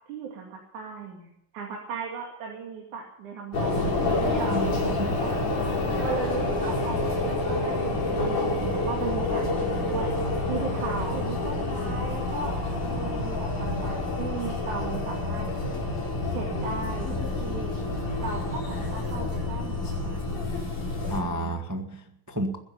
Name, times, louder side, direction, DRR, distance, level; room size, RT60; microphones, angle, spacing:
voice 1, 0.1-5.4 6.0-10.1 10.5-12.5 12.8-15.5 16.3-17.7 18.2-20.5, right 5 dB, 80° right, 0 dB, 3.9 m, -36 dB
sound 1, 3.5-21.2, left 2 dB, 85° left, 6.0 m, -28 dB
voice 2, 4.4-5.2 21.1-22.6, right 1 dB, 15° right, 4 dB, 0.6 m, -31 dB
22.0 x 10.5 x 5.4 m, 0.80 s
omnidirectional pair, 3.4 m